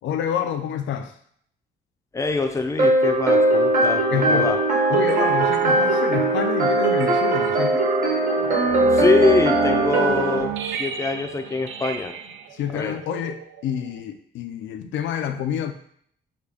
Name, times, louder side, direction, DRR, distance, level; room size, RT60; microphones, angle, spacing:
voice 1, 0.0-1.1 4.1-4.5 4.9-7.9 12.5-15.7, left 8 dB, 70° left, 8 dB, 0.4 m, -28 dB
voice 2, 2.1-4.6 8.9-12.1 12.7-12.9, left 3 dB, 15° left, 5 dB, 0.5 m, -24 dB
sound 1, 2.8-10.4, right 2 dB, 40° right, 1.1 m, -20 dB
sound 2, 5.1-14.0, right 9 dB, 80° right, 0.4 m, -33 dB
3.7 x 2.2 x 3.4 m, 0.63 s
cardioid pair, 90°, 20 cm